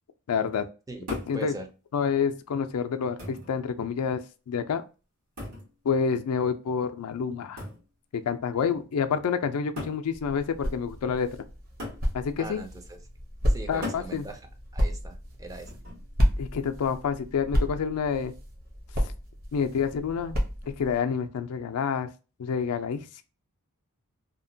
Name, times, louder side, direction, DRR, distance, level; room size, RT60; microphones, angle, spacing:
voice 1, 0.3-0.7 1.3-1.5 1.9-4.2 4.5-4.8 5.8-7.7 8.1-11.3 12.1-12.6 13.7-14.2 16.4-18.3 19.5-20.4 20.7-22.1 22.4-23.2, left 6 dB, 80° left, 0.4 m, -28 dB
sound 1, 1.1-1.4 2.4-2.5 3.2-3.6 5.4-5.7 7.6-7.9 8.9-9.0 9.8-10.1 11.8-12.1 13.8-14.1 15.7-16.1, left 2 dB, 75° right, 1.3 m, -37 dB
voice 2, 1.3-1.7 12.4-13.0 13.5-15.7, right 2 dB, 15° right, 0.4 m, -40 dB
sound 2, 10.1-21.0, equal, 40° right, 0.8 m, -31 dB
2.8 x 2.1 x 2.6 m
head